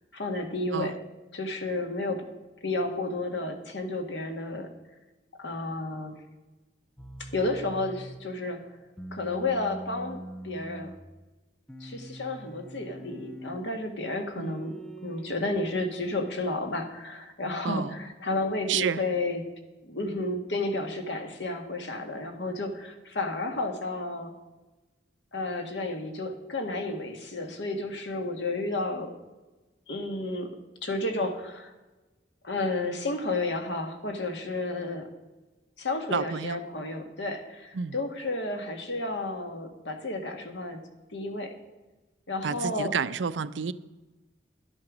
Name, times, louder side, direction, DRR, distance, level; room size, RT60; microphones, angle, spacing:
voice 1, 0.1-1.0 1.3-2.3 2.6-4.7 5.4-6.1 7.2-8.6 9.1-10.9 11.8-19.4 19.8-24.3 25.3-29.1 29.9-30.5 30.8-31.7 32.4-35.1 35.8-40.8 41.1-41.5 42.3-42.9, left 2 dB, 75° left, 5 dB, 1.7 m, -32 dB
sound 1, 7.0-8.3 9.0-11.0 11.7-13.7 14.4-16.4, right 1 dB, 5° left, 0.5 m, -43 dB
voice 2, 18.7-19.0 36.1-36.6 37.7-37.9 42.4-43.7, right 6 dB, 85° right, 15 dB, 0.5 m, -30 dB
12.0 x 8.8 x 6.1 m, 1.1 s
head